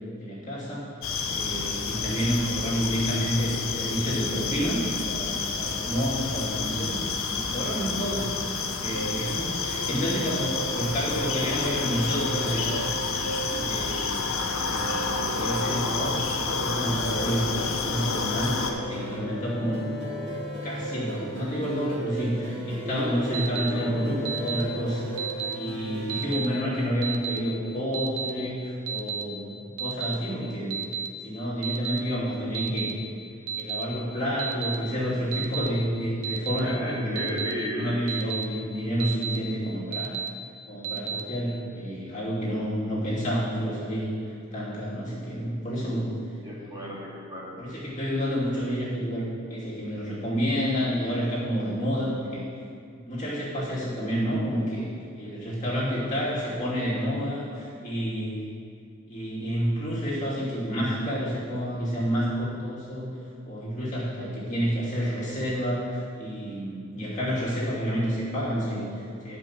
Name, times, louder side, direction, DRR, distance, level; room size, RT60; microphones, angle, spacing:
voice 1, 0.2-0.9 1.3-7.0 7.3-8.3 8.8-12.7 13.6-14.2 14.6-16.2 16.5-18.6 18.9-25.0 25.5-30.7 31.2-32.9 33.6-37.3 37.7-40.1 40.7-44.1 44.5-46.1 47.6-49.2 49.5-52.4 52.9-54.9 55.2-58.5 59.1-63.1 63.5-69.4, equal, 35° left, -7 dB, 2.6 m, -29 dB
sound 1, 1.0-18.7, left 4 dB, 80° left, 1.0 m, -29 dB
sound 2, 8.9-26.2, right 1 dB, 60° right, 2.9 m, -36 dB
voice 2, 22.8-24.2 36.2-36.3 36.6-38.0 38.6-38.7 46.4-47.7, equal, 20° right, -8 dB, 2.3 m, -34 dB
Alarm, 23.3-23.7 24.3-24.6 25.2-25.5 26.1-26.5 27.0-27.4 27.9-28.3 28.9-29.2 29.8-30.1 30.7-31.1 31.6-32.0 32.5-32.9 33.5-33.8 34.4-34.8 35.3-35.7 36.2-36.6 37.2-37.5 38.1-38.4 39.0-39.4 39.9-40.3 40.8-41.2, right 8 dB, 85° right, 0.8 m, -31 dB
11.0 x 5.4 x 7.2 m, 2.3 s
head